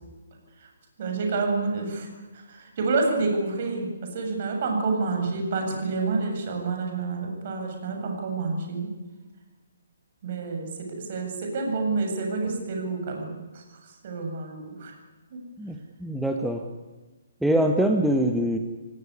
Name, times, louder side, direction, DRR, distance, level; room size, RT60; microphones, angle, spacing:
voice 1, 1.0-8.9 10.2-10.7 11.0-14.9 15.3-15.4, right 3 dB, 40° right, 2 dB, 7.8 m, -28 dB
voice 2, 15.6-16.6 17.4-18.6, right 1 dB, ahead, 3 dB, 1.4 m, -24 dB
28.0 x 17.5 x 9.9 m, 1.2 s
figure-of-eight pair, 135°, 0 cm